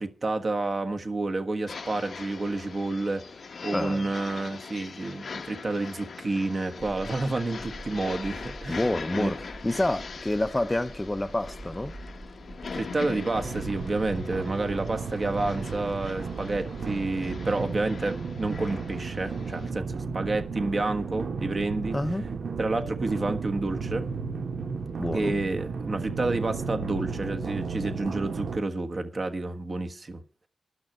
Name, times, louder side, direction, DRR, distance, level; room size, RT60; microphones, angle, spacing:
voice 1, 0.0-3.2 3.6-8.9 9.1-9.3 12.7-22.0 22.6-24.1 25.1-30.2, right 2 dB, 50° right, 1.4 m, -29 dB
sound 1, 1.7-19.7, left 5 dB, 70° left, 0.9 m, -41 dB
voice 2, 3.7-4.1 8.7-11.9 21.9-22.2 25.0-25.4, left 1 dB, 20° left, 0.6 m, -28 dB
sound 2, 6.8-16.9, right 1 dB, 25° right, 1.1 m, -45 dB
sound 3, 13.3-28.6, right 5 dB, 75° right, 0.9 m, -34 dB
11.5 x 6.1 x 8.9 m
cardioid pair, 55°, 0 cm